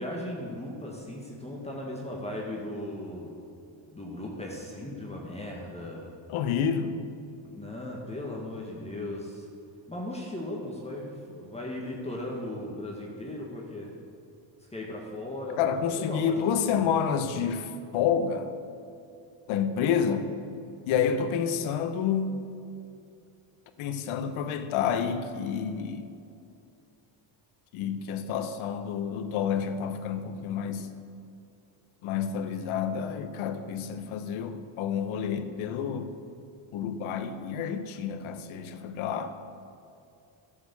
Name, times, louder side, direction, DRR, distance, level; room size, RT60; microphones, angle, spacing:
voice 1, 0.0-3.4 3.9-6.1 7.5-9.5 9.9-13.9 14.7-16.8, left 1 dB, 15° left, -2 dB, 1.7 m, -37 dB
voice 2, 6.3-7.0 15.6-18.5 19.5-20.3 20.9-22.4 23.8-26.1 27.7-30.9 32.0-36.1 36.7-39.3, left 7 dB, 75° left, 9 dB, 1.1 m, -29 dB
11.5 x 7.0 x 7.1 m, 2.6 s
cardioid pair, 100°, 49 cm